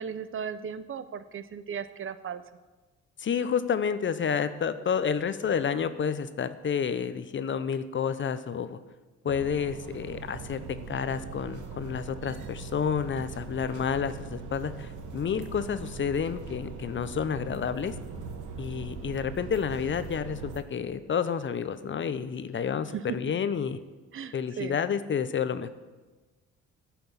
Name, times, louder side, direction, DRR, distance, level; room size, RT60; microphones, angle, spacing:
voice 1, 0.0-2.4 24.1-24.8, right 7 dB, 45° right, 13 dB, 0.6 m, -37 dB
voice 2, 3.2-8.8 9.2-17.9 18.6-23.8 24.3-25.7, left 7 dB, 40° left, 13 dB, 0.6 m, -30 dB
sound 1, 9.2-20.6, right 5 dB, 80° right, 1.3 m, -41 dB
10.5 x 5.9 x 7.0 m, 1.2 s
cardioid pair, 90°, 30 cm